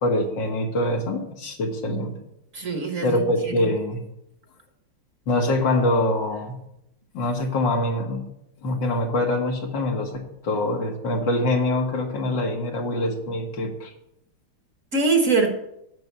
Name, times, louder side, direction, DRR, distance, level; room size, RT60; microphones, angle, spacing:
voice 1, 0.0-2.2 3.0-4.0 5.3-6.6 7.1-8.2 8.6-13.9, left 1 dB, 65° left, 2 dB, 2.2 m, -24 dB
voice 2, 2.5-3.7 14.9-15.5, right 4 dB, 45° right, 3 dB, 1.7 m, -23 dB
9.2 x 7.0 x 6.8 m, 0.80 s
omnidirectional pair, 2.2 m